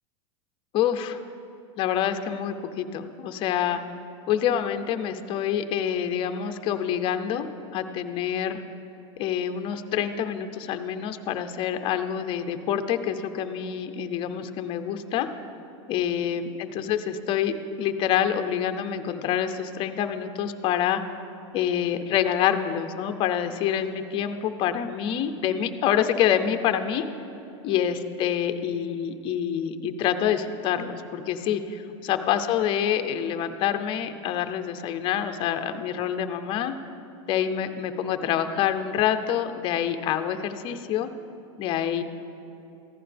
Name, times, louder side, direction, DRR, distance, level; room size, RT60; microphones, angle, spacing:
voice 1, 0.7-1.2 1.8-3.8 4.3-7.5 7.7-8.6 9.2-15.3 15.9-21.0 21.5-27.1 27.6-36.7 37.3-41.1 41.6-42.0, left 9 dB, 35° left, 8 dB, 0.5 m, -26 dB
14.5 x 11.0 x 3.4 m, 2.8 s
supercardioid pair, 145°, 16 cm